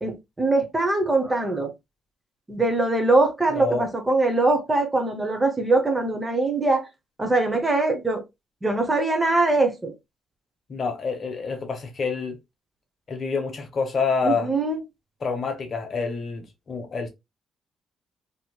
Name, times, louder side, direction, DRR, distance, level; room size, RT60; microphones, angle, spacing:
voice 1, 0.0-1.7 2.5-6.9 7.2-8.2 8.6-9.9 14.2-14.8, right 2 dB, 15° right, 0.8 m, -22 dB
voice 2, 3.5-3.9 10.7-12.4 13.1-14.5 15.2-17.1, left 5 dB, 45° left, 0.9 m, -27 dB
3.0 x 2.9 x 2.3 m
cardioid pair, 125°, 0 cm